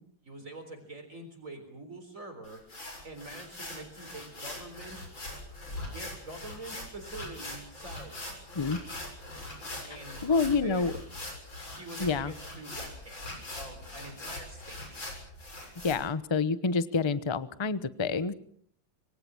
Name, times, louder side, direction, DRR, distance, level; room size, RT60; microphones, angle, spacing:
voice 1, 0.2-2.6 3.0-5.0 5.9-8.2 9.9-11.0 11.8-14.8, right 2 dB, 40° right, 5 dB, 4.3 m, -45 dB
sound 1, 2.4-15.9, left 1 dB, 80° left, 7.8 m, -42 dB
voice 2, 10.2-10.9 12.0-12.3 15.8-18.4, left 4 dB, 25° left, 14 dB, 0.5 m, -28 dB
26.5 x 23.0 x 6.3 m, 0.62 s
omnidirectional pair, 2.1 m